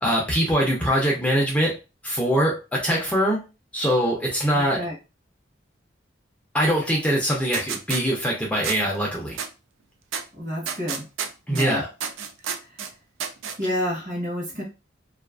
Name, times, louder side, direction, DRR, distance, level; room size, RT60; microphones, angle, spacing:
voice 1, 0.0-1.7 2.0-3.4 3.7-4.8 6.5-9.4 11.5-11.9, equal, 5° left, -3 dB, 0.5 m, -23 dB
voice 2, 4.5-4.9 10.3-11.0 11.5-11.8 13.6-14.6, equal, 40° right, -1 dB, 0.9 m, -29 dB
sound 1, 7.5-8.0 8.6-8.8 9.4-9.5 10.1-10.2 10.7-11.7 12.0-12.9 13.2-13.6, right 7 dB, 80° right, 0.4 m, -30 dB
2.4 x 2.4 x 2.3 m, 0.29 s
head